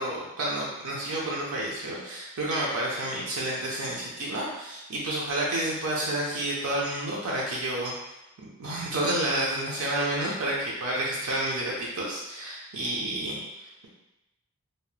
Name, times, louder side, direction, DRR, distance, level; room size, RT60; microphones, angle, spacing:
voice 1, 0.0-7.9 8.4-13.9, right 1 dB, 70° right, -4 dB, 0.5 m, -30 dB
2.7 x 2.0 x 3.1 m, 0.94 s
head